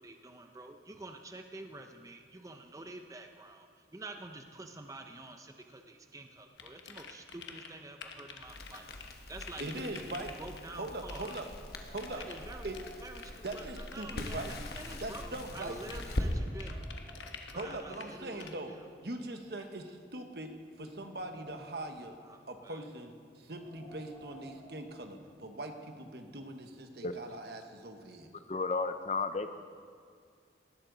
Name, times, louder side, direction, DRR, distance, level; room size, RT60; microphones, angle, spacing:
voice 1, 0.0-11.4 12.1-12.7 13.0-16.8 17.5-18.9 22.2-22.8, right 2 dB, 20° right, 5 dB, 0.6 m, -48 dB
sound 1, 6.6-7.7 8.0-10.6 11.1-11.4 12.0-18.1 18.4-18.5, left 5 dB, 85° left, 1.1 m, -48 dB
Crackle, 8.4-16.3, left 1 dB, 55° left, 1.1 m, -42 dB
voice 2, 9.6-10.3 10.7-11.5 11.9-12.2 12.6-12.8 13.4-14.5 15.0-15.8 17.5-18.7 19.0-20.5 20.8-22.2 22.5-28.3, right 2 dB, 60° right, 5 dB, 1.2 m, -41 dB
Wind, 11.6-14.2 14.5-14.6 15.3-15.4 15.9-17.5 18.4-19.9 20.5-22.1 23.3-25.5, right 2 dB, 10° left, 1.8 m, -56 dB
voice 3, 28.5-29.5, left 3 dB, 35° left, 10 dB, 0.5 m, -32 dB
18.5 x 11.5 x 3.9 m, 2.2 s
head